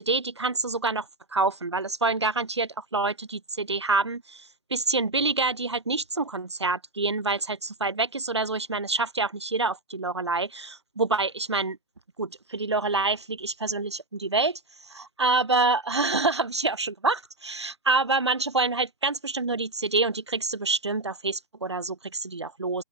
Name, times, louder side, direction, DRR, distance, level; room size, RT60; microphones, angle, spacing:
voice 1, 0.0-11.8 12.2-14.9 15.2-22.8, right 3 dB, 80° right, 6.9 m, -27 dB
open air
figure-of-eight pair, 160°, 14 cm